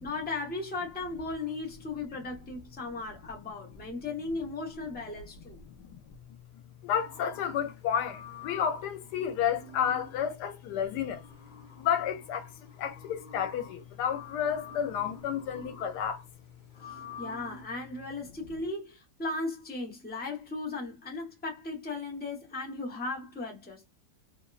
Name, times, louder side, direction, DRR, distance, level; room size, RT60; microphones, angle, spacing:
voice 1, 0.0-5.6 16.9-23.9, left 3 dB, 15° left, 0.3 m, -36 dB
voice 2, 6.8-11.2 11.8-12.5 12.8-16.2, left 8 dB, 85° left, 1.2 m, -31 dB
sound 1, 6.9-17.6, left 4 dB, 40° left, 0.8 m, -49 dB
2.8 x 2.2 x 2.2 m
omnidirectional pair, 1.7 m